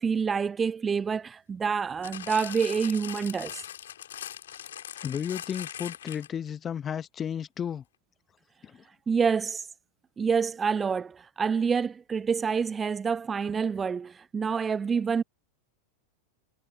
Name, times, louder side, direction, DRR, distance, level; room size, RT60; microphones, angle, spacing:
voice 1, 0.0-3.7 9.1-9.7 10.2-15.2, right 6 dB, 20° right, 0.6 m, -27 dB
sound 1, 2.0-6.5 7.2-7.3, left 10 dB, 60° left, 4.1 m, -40 dB
voice 2, 5.0-7.8 8.6-8.8, left 8 dB, 25° left, 1.3 m, -33 dB
figure-of-eight pair, 90°, 0 cm